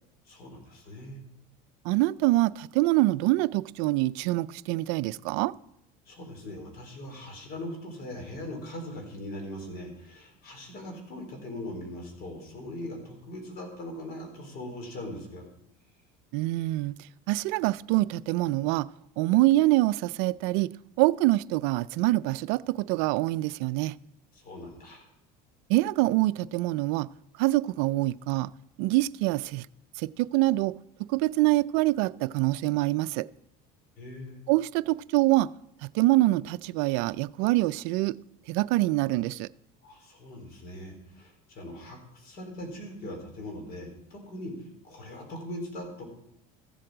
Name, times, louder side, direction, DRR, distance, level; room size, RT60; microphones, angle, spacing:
voice 1, 0.3-1.2 6.1-15.4 24.3-25.1 34.0-34.4 39.8-46.1, left 1 dB, 55° left, 3 dB, 4.0 m, -40 dB
voice 2, 1.8-5.5 16.3-16.9 17.3-18.9 19.2-20.7 21.0-23.9 25.7-27.1 27.4-28.5 28.8-29.7 30.0-30.7 31.1-33.3 34.5-35.5 35.8-38.2 38.5-39.5, right 19 dB, 70° right, 18 dB, 0.4 m, -25 dB
14.5 x 7.7 x 5.0 m, 0.81 s
supercardioid pair, 90°, 19 cm